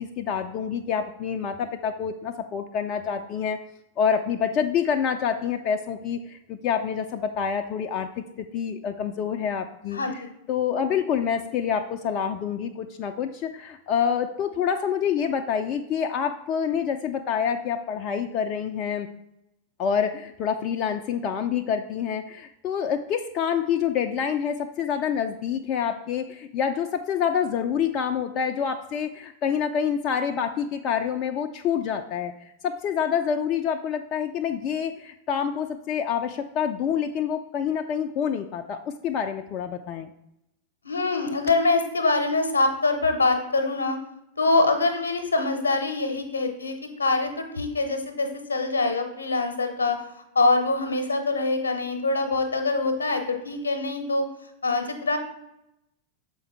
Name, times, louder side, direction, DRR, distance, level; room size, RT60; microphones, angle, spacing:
voice 1, 0.0-3.6 4.0-10.2 10.5-19.1 19.8-32.3 32.6-40.1, left 7 dB, 35° left, 5 dB, 0.4 m, -27 dB
voice 2, 40.8-44.0 44.4-50.0 50.3-54.3 54.6-55.2, left 3 dB, 75° left, 6 dB, 0.9 m, -24 dB
7.0 x 4.6 x 3.5 m, 0.84 s
figure-of-eight pair, 90°, 0 cm